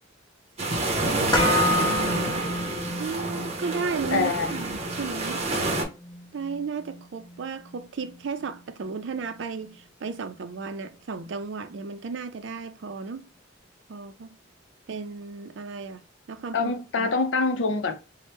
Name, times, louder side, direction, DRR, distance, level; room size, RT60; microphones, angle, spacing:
sound 1, 0.6-5.8, right 2 dB, 35° right, 0.7 m, -28 dB
voice 1, 1.1-2.4 3.0-5.5 6.3-13.3 13.9-14.4 14.9-16.0 16.3-17.1, right 5 dB, 70° right, 0.4 m, -34 dB
sound 2, 1.3-9.4 9.7-9.8, left 2 dB, 25° left, 0.7 m, -31 dB
voice 2, 4.1-4.5 16.5-17.9, left 4 dB, 70° left, 0.6 m, -25 dB
4.2 x 2.1 x 3.2 m
head